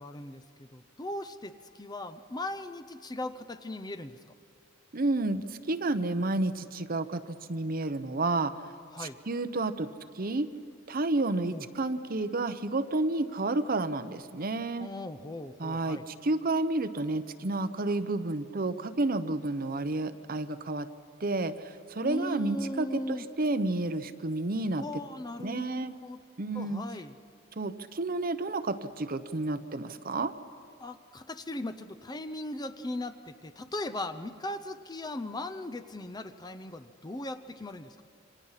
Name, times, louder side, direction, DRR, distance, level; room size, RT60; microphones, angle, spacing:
voice 1, 0.0-4.2 8.9-9.1 11.5-11.6 14.8-16.0 22.0-23.3 24.8-25.7 26.0-26.2 26.5-27.1 30.8-37.9, left 1 dB, 20° left, 9 dB, 0.7 m, -38 dB
voice 2, 4.9-8.5 9.0-9.9 10.1-10.5 10.9-14.9 15.6-20.9 21.2-24.8 25.4-25.9 26.4-26.8 27.6-30.3, right 2 dB, 45° right, 11 dB, 0.8 m, -30 dB
28.0 x 25.0 x 5.7 m, 2.4 s
head